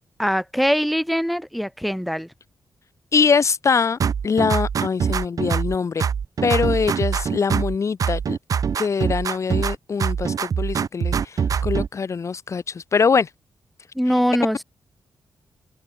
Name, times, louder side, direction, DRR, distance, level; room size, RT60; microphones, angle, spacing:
voice 1, 0.2-2.3 13.9-14.6, equal, ahead, 3.4 m, -22 dB
voice 2, 3.1-6.0 6.4-8.4 8.8-13.3, left 5 dB, 45° left, 1.6 m, -23 dB
sound 1, 4.0-5.7 6.0-7.7 8.0-9.7 10.0-11.9, right 7 dB, 55° right, 1.2 m, -23 dB
wide cardioid pair, 145°, 7 cm